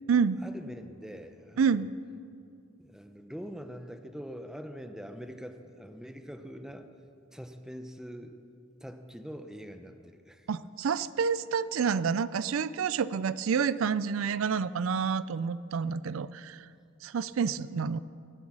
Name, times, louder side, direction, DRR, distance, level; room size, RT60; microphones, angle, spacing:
voice 1, 0.4-1.9 2.8-6.9 7.3-8.3 8.8-10.5, equal, 5° right, 7 dB, 0.8 m, -43 dB
voice 2, 1.6-1.9 10.5-16.7 17.0-18.0, right 6 dB, 85° right, 16 dB, 0.4 m, -28 dB
23.5 x 8.0 x 6.2 m, 2.4 s
head